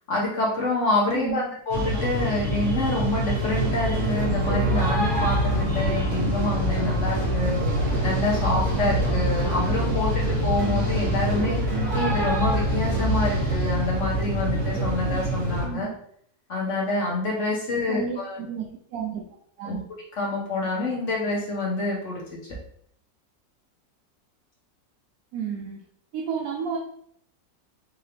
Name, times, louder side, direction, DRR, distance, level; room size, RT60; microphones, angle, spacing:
voice 1, 0.1-7.6 8.0-11.6 11.9-15.9 16.5-18.4 19.6-19.8 20.2-22.2, left 2 dB, 50° left, -3 dB, 1.1 m, -27 dB
voice 2, 1.1-1.5 15.6-15.9 17.9-18.6 18.9-19.2 19.6-19.8 25.3-25.8 26.1-26.8, right 7 dB, 70° right, 0 dB, 0.9 m, -31 dB
sound 1, 1.7-15.7, right 1 dB, 50° right, 1.3 m, -26 dB
sound 2, 3.5-13.6, right 1 dB, 25° right, 1.4 m, -28 dB
4.7 x 2.7 x 3.4 m, 0.65 s
omnidirectional pair, 1.9 m